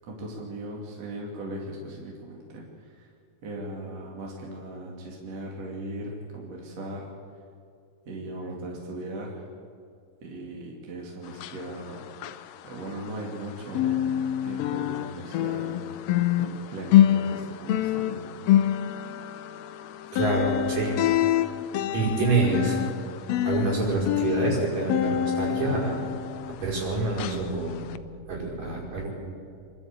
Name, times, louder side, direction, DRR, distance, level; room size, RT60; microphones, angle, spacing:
voice 1, 0.1-3.1 3.4-7.1 8.1-9.5 10.2-12.1 12.6-14.1 14.4-15.9 16.4-18.4, right 1 dB, 50° right, -2 dB, 3.4 m, -38 dB
sound 1, 11.3-13.4 13.7-26.8 27.2-27.4 27.9-28.0, left 11 dB, 90° left, 1.4 m, -26 dB
voice 2, 20.1-21.0 21.9-22.8 23.5-26.0 26.6-27.8 28.3-29.1, right 3 dB, 75° right, -4 dB, 7.0 m, -26 dB
26.0 x 12.5 x 8.7 m, 2.3 s
omnidirectional pair, 3.8 m